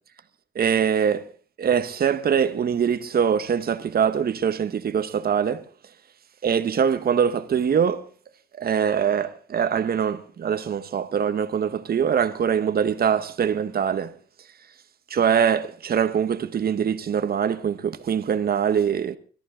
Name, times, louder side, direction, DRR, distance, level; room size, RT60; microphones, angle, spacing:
voice 1, 0.5-1.2 1.6-5.6 6.4-8.0 8.6-14.1 15.1-19.2, right 7 dB, 50° right, 1.3 m, -23 dB
21.5 x 14.0 x 3.9 m
cardioid pair, 90°, 20 cm